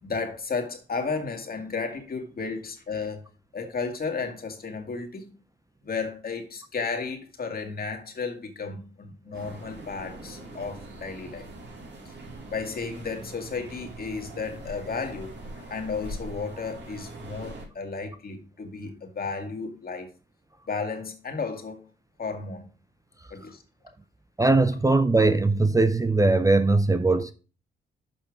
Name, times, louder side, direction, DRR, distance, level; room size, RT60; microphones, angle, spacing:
voice 1, 0.0-3.2 3.5-5.3 5.8-11.5 12.5-20.1 20.7-21.8 22.2-22.7 23.3-23.6, left 4 dB, 50° left, 2.1 m, -33 dB
sound 1, 9.3-17.6, right 2 dB, 60° right, 3.0 m, -42 dB
voice 2, 24.4-27.3, right 3 dB, 15° right, 0.5 m, -20 dB
7.0 x 5.3 x 4.9 m
cardioid pair, 70°, 20 cm